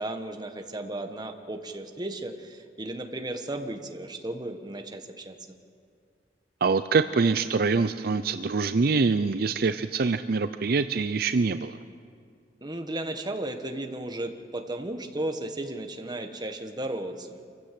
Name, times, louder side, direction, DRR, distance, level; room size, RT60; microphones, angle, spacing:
voice 1, 0.0-5.3 12.6-17.4, right 1 dB, 25° right, 5 dB, 1.4 m, -34 dB
voice 2, 6.6-11.8, right 4 dB, 60° right, 11 dB, 0.5 m, -24 dB
26.5 x 15.0 x 7.7 m, 2.3 s
head